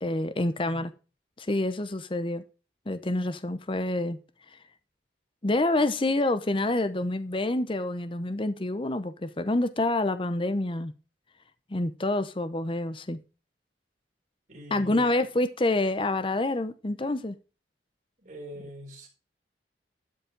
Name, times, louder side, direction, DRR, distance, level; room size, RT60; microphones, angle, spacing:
voice 1, 0.0-0.9 1.4-2.4 2.9-4.2 5.4-10.9 11.7-13.2 14.7-17.4, left 2 dB, 25° left, 0.7 m, -27 dB
voice 2, 14.5-15.1 18.2-19.1, equal, 40° right, 4.5 m, -43 dB
12.5 x 5.2 x 5.1 m
head